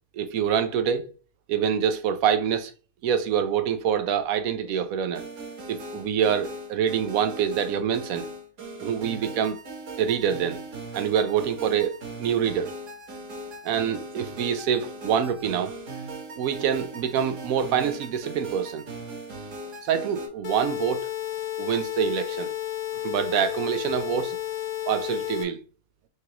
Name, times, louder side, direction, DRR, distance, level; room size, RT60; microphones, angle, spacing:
voice 1, 0.1-1.0 1.5-2.7 3.0-5.2 5.7-8.3 8.8-9.6 10.0-10.6 10.9-12.7 13.6-15.7 16.3-18.8 19.9-21.1 21.6-22.5 23.0-24.4 24.9-25.6, right 8 dB, 70° right, 1.0 m, -25 dB
sound 1, 5.1-20.3, right 2 dB, 55° right, 1.5 m, -39 dB
sound 2, 20.4-25.4, left 12 dB, 65° left, 1.1 m, -32 dB
5.9 x 2.4 x 2.9 m
omnidirectional pair, 1.6 m